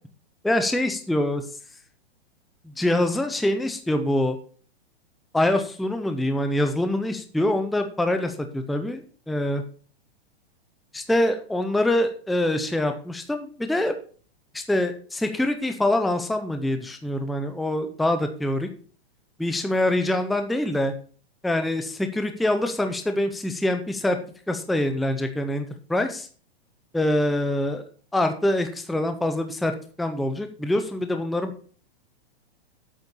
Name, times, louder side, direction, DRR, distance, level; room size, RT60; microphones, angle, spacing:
voice 1, 0.4-1.4 2.6-4.4 5.3-9.6 10.9-13.9 14.5-18.7 19.4-20.9 21.4-24.2 24.5-26.3 26.9-27.8 28.1-29.7 30.0-31.5, left 1 dB, ahead, 7 dB, 0.4 m, -25 dB
8.4 x 6.8 x 6.6 m, 0.42 s
hypercardioid pair, 150°, 31 cm